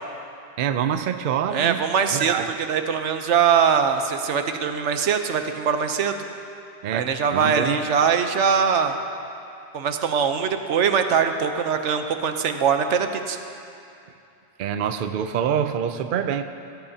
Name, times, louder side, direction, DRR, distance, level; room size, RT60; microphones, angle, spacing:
voice 1, 0.6-1.8 2.1-2.5 6.8-7.8 14.6-16.4, right 8 dB, 60° right, 9 dB, 0.6 m, -25 dB
voice 2, 1.5-2.3 2.7-6.2 6.9-9.0 9.7-13.4, right 7 dB, 85° right, 7 dB, 1.1 m, -22 dB
17.0 x 14.5 x 2.8 m, 2.6 s
omnidirectional pair, 1.2 m